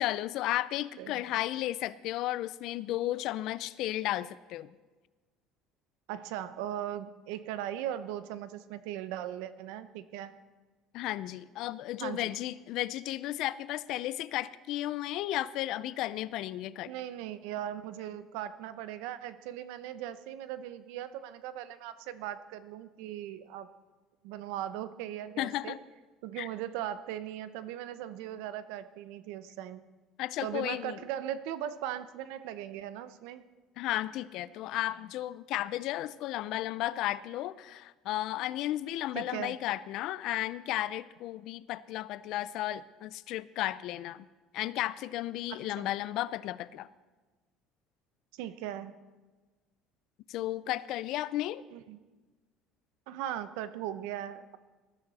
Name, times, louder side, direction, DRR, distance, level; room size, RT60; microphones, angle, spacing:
voice 1, 0.0-4.7 10.9-16.9 25.4-25.8 26.4-26.5 30.2-31.0 33.8-44.3 44.5-46.9 50.3-51.6, left 14 dB, 55° left, 17 dB, 0.5 m, -34 dB
voice 2, 6.1-10.3 12.0-12.3 16.9-23.7 24.2-25.8 26.2-29.8 30.4-33.4 39.1-39.6 45.5-45.9 48.3-49.0 51.7-52.0 53.1-54.6, right 11 dB, 80° right, 13 dB, 0.8 m, -39 dB
20.0 x 12.5 x 4.2 m, 1.3 s
cardioid pair, 170°, 0 cm